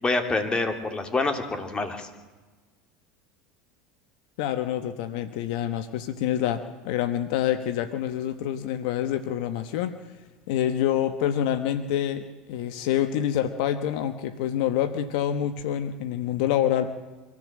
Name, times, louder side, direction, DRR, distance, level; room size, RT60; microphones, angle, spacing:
voice 1, 0.0-2.1, left 3 dB, 20° left, 6 dB, 3.0 m, -26 dB
voice 2, 4.4-9.9 10.5-16.9, left 10 dB, 70° left, 11 dB, 1.1 m, -27 dB
24.5 x 14.5 x 7.5 m, 1.3 s
hypercardioid pair, 95°, 4 cm